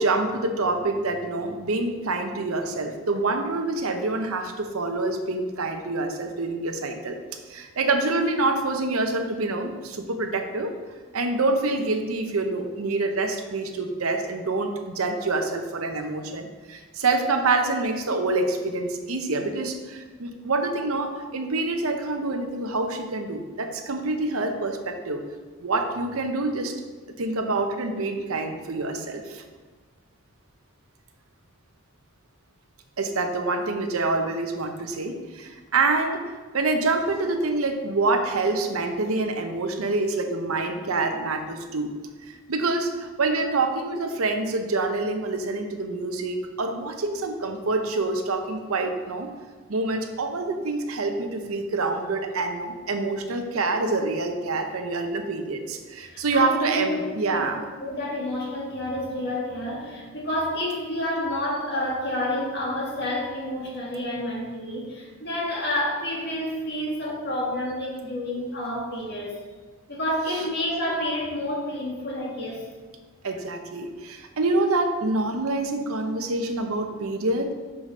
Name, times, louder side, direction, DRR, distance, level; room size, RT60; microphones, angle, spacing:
voice 1, 0.0-7.2 7.5-10.7 11.1-25.2 25.6-26.7 27.2-29.4 33.0-36.2 36.5-41.9 42.3-49.3 49.7-57.6 73.2-77.5, right 3 dB, 85° right, 5 dB, 0.8 m, -26 dB
voice 2, 56.3-57.0 57.3-57.4 57.8-69.4 69.9-72.7, left 1 dB, 50° left, -4 dB, 1.8 m, -29 dB
5.7 x 4.9 x 5.0 m, 1.4 s
head